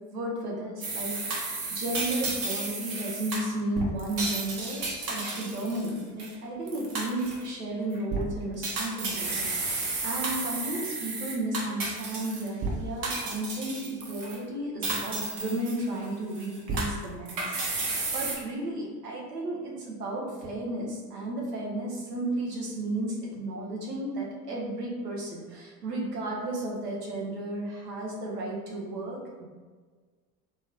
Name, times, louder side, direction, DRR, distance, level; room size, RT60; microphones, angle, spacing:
voice 1, 0.1-29.5, right 1 dB, 80° right, -2 dB, 0.9 m, -33 dB
sound 1, 0.8-6.3 6.7-7.5 7.9-8.2 8.6-12.7 13.0-14.4 14.8-16.1 16.3-18.4, right 3 dB, 45° right, 1.0 m, -32 dB
3.1 x 2.2 x 3.6 m, 1.5 s
figure-of-eight pair, 70°, 47 cm